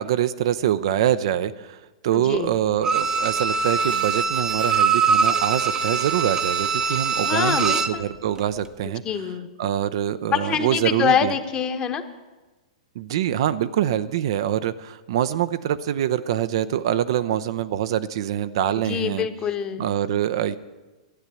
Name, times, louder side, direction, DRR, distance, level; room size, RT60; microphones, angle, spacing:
voice 1, 0.0-9.0 9.6-11.3 13.0-19.3 19.8-20.6, right 11 dB, 50° right, 12 dB, 0.6 m, -24 dB
voice 2, 2.1-2.6 7.2-8.0 8.8-9.5 10.3-12.0 18.8-19.8, left 8 dB, 25° left, 8 dB, 1.2 m, -25 dB
Bowed string instrument, 2.8-8.0 8.4-8.5, right 5 dB, 20° right, 0.8 m, -23 dB
13.0 x 9.1 x 8.3 m, 1.2 s
figure-of-eight pair, 100°, 3 cm